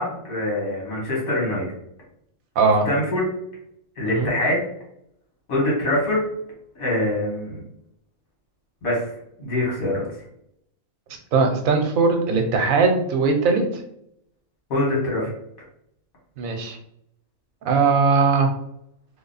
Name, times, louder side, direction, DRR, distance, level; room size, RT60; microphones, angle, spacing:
voice 1, 0.0-1.7 2.9-3.3 4.0-4.7 5.5-6.2 6.8-7.6 8.8-9.1 9.4-10.1 14.7-15.3, left 1 dB, 80° left, -3 dB, 1.9 m, -24 dB
voice 2, 2.6-2.9 4.0-4.3 11.3-13.8 16.4-16.8 17.6-18.5, right 4 dB, 80° right, 4 dB, 1.1 m, -19 dB
3.4 x 2.1 x 3.9 m, 0.74 s
omnidirectional pair, 1.4 m